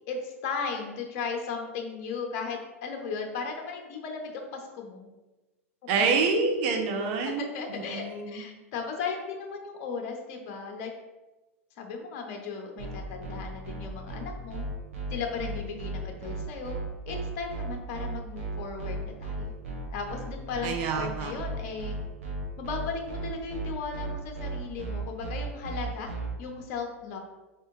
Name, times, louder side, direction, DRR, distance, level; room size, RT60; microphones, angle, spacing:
voice 1, 0.1-5.1 6.0-6.1 7.2-10.9 11.8-14.6 15.1-16.8 17.1-19.5 19.9-22.0 22.6-26.1 26.4-27.2, left 5 dB, 50° left, 2 dB, 0.7 m, -36 dB
voice 2, 5.9-8.4 20.6-21.3, right 4 dB, 50° right, 3 dB, 0.6 m, -27 dB
sound 1, 12.8-26.3, right 3 dB, 70° right, 1.3 m, -35 dB
4.3 x 3.3 x 3.0 m, 1.1 s
figure-of-eight pair, 90°, 8 cm